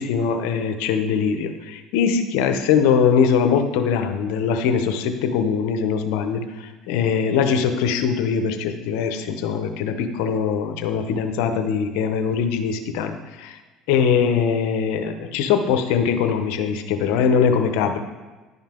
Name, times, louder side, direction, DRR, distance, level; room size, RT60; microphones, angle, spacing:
voice 1, 0.0-13.6 13.9-18.0, left 6 dB, 80° left, 7 dB, 0.8 m, -22 dB
11.0 x 5.6 x 3.7 m, 1.2 s
supercardioid pair, 95°, 0 cm